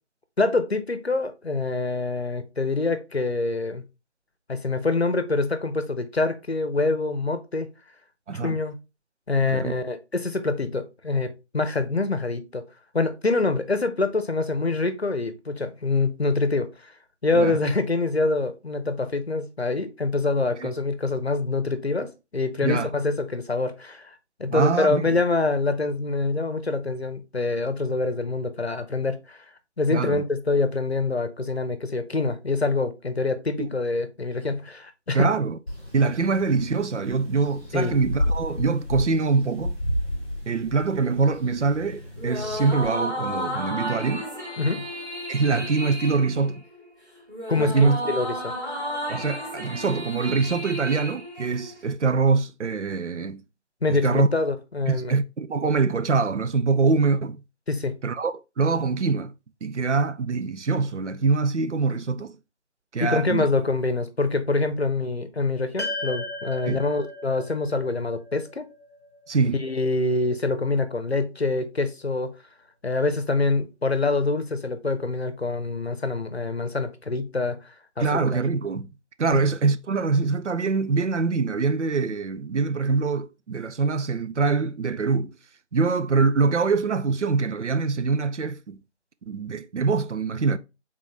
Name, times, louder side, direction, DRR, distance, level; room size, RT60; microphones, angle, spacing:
voice 1, 0.4-3.8 4.5-7.7 8.3-8.8 9.3-12.6 12.9-16.9 17.2-29.4 29.8-35.3 37.7-38.0 44.6-44.9 47.5-48.5 53.8-55.2 57.7-58.0 63.0-68.6 69.5-72.3 72.8-78.4, left 3 dB, 65° left, 0.8 m, -25 dB
voice 2, 8.3-8.6 9.4-9.7 17.3-17.6 20.6-20.7 22.6-22.9 24.5-25.2 29.9-30.2 33.6-33.7 35.1-35.6 35.9-39.8 40.5-44.3 45.3-46.6 47.6-48.0 49.1-53.4 53.9-54.3 54.9-57.4 58.0-59.3 59.6-62.3 62.9-63.5 66.7-66.8 69.3-69.6 78.0-78.9 79.2-85.3 85.7-88.8 89.3-90.6, right 4 dB, 85° right, 0.5 m, -24 dB
sound 1, 35.7-42.9, left 1 dB, ahead, 2.2 m, -32 dB
sound 2, 42.2-51.9, equal, 35° right, 2.8 m, -33 dB
sound 3, 65.8-70.2, left 2 dB, 25° left, 1.4 m, -37 dB
4.1 x 3.7 x 3.2 m
figure-of-eight pair, 170°, 35 cm